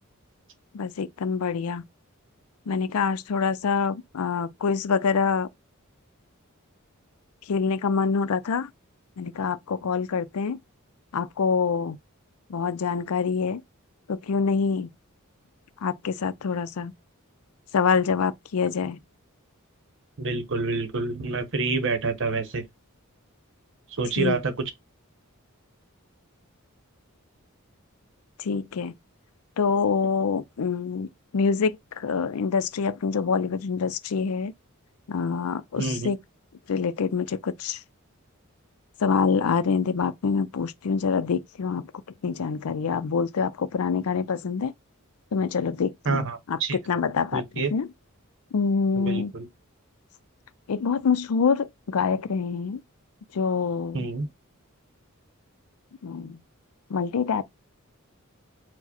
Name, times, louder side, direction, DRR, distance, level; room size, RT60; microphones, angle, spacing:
voice 1, 0.7-1.8 2.7-5.5 7.5-8.7 9.2-10.6 11.1-12.0 12.5-13.6 14.1-14.9 15.8-16.9 17.7-19.0 24.2-24.4 28.4-28.9 29.6-31.1 31.3-34.5 35.1-36.2 36.7-37.8 39.0-41.9 42.2-44.7 45.3-46.2 46.5-47.4 47.7-47.9 48.5-49.3 50.7-52.8 53.3-54.1 56.0-56.4 56.9-57.4, left 5 dB, 85° left, 0.5 m, -25 dB
voice 2, 20.2-22.6 24.0-24.5 35.8-36.1 46.0-46.8 47.3-47.7 49.0-49.5 53.9-54.3, right 3 dB, 60° right, 0.9 m, -27 dB
4.7 x 2.1 x 4.2 m
head